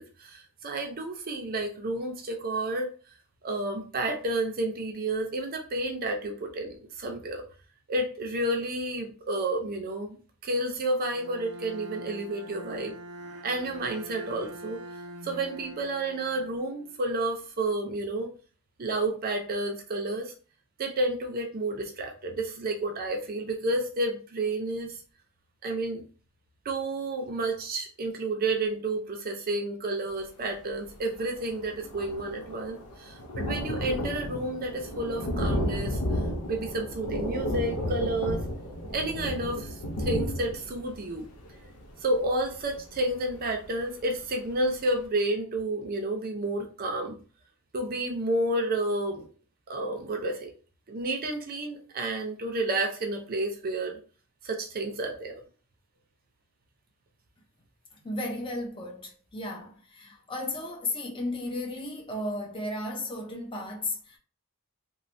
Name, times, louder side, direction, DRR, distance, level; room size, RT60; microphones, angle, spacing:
voice 1, 0.0-2.9 3.4-7.4 7.9-12.9 13.4-14.8 15.2-18.3 18.8-20.3 20.8-24.9 25.6-26.0 26.6-36.0 36.5-38.4 38.9-41.3 42.0-47.2 47.7-49.3 49.7-50.5 50.9-54.0 54.4-55.3, right 2 dB, 40° right, 0.5 m, -30 dB
Bowed string instrument, 11.1-17.1, right 1 dB, 90° right, 0.6 m, -44 dB
Thunder, 30.9-31.0 31.2-43.8 44.3-44.4 44.7-44.8, equal, 85° left, 0.6 m, -33 dB
voice 2, 57.9-64.2, left 2 dB, 25° left, 0.6 m, -34 dB
3.1 x 2.1 x 2.5 m
head